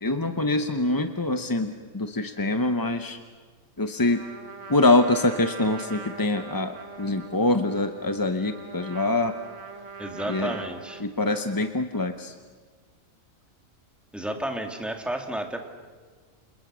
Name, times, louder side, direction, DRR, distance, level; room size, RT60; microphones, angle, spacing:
voice 1, 0.0-3.2 3.8-4.2 4.7-9.3 10.3-10.6 11.0-12.3, left 2 dB, 20° left, 8 dB, 0.6 m, -24 dB
Trumpet, 4.1-12.2, right 5 dB, 60° right, 1.7 m, -42 dB
voice 2, 10.0-11.0 14.1-15.6, right 1 dB, ahead, 4 dB, 2.2 m, -32 dB
29.5 x 27.0 x 6.2 m, 1.5 s
omnidirectional pair, 1.4 m